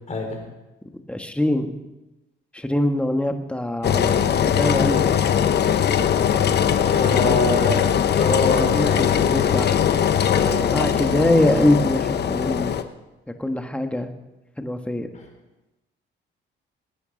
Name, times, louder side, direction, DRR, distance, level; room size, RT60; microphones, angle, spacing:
voice 1, 0.1-0.4 6.8-7.8 8.2-9.6 10.3-10.6, left 3 dB, 35° left, 2 dB, 4.5 m, -25 dB
voice 2, 1.1-1.7 2.5-5.1 7.0-7.4 8.5-9.8 10.7-12.7 13.4-14.1 14.6-15.1, left 1 dB, 5° left, 6 dB, 1.6 m, -23 dB
Engine, 3.8-12.8, left 8 dB, 55° left, 1.0 m, -20 dB
19.5 x 9.7 x 5.3 m, 1.0 s
cardioid pair, 90°, 20 cm